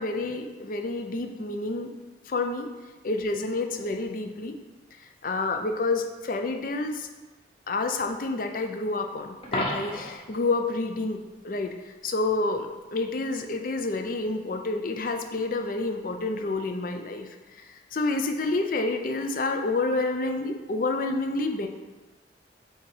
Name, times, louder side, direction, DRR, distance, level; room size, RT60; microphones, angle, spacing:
voice 1, 0.0-1.9 2.3-2.7 3.0-4.6 5.2-7.1 7.7-12.7 12.9-17.3 17.7-21.7, left 3 dB, 50° left, 5 dB, 0.5 m, -29 dB
Coin (dropping), 9.4-10.3 16.4-16.5, left 1 dB, 30° left, 0.9 m, -31 dB
7.9 x 2.9 x 4.8 m, 1.2 s
head